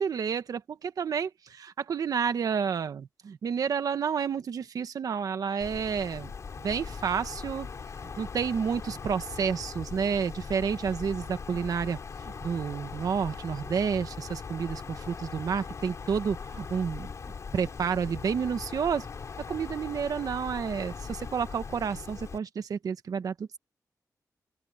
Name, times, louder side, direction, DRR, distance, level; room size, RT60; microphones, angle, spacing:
voice 1, 0.0-6.3 6.6-7.7 8.2-17.1 17.5-19.1 19.5-23.6, right 6 dB, 75° right, 1.3 m, -30 dB
Wind, 5.6-22.4, left 5 dB, 55° left, 4.4 m, -40 dB
open air
wide cardioid pair, 155°, 6 cm